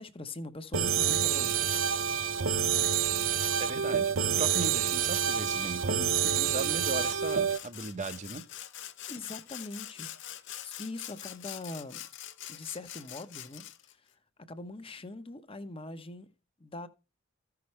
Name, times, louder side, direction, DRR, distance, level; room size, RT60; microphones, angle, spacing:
voice 1, 0.0-1.7 3.9-4.1 9.1-10.1 10.6-12.0 12.5-14.1 14.5-16.3 16.6-16.9, left 2 dB, 25° left, 0.9 m, -42 dB
sound 1, 0.7-7.6, right 7 dB, 70° right, 0.6 m, -28 dB
voice 2, 3.6-8.4, right 3 dB, 35° right, 0.8 m, -37 dB
Sawing, 5.2-5.8 6.2-13.9, left 12 dB, 60° left, 0.8 m, -45 dB
14.5 x 5.9 x 3.2 m
head